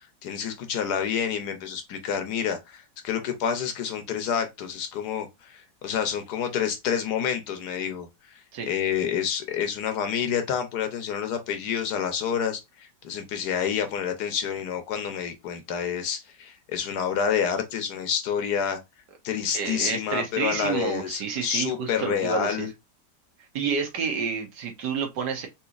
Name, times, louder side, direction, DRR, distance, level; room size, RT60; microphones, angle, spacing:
voice 1, 0.2-18.8 19.2-22.7, left 8 dB, 70° left, 1.2 m, -28 dB
voice 2, 19.5-22.7 23.5-25.5, right 6 dB, 70° right, 1.5 m, -29 dB
4.0 x 2.9 x 2.3 m
omnidirectional pair, 1.9 m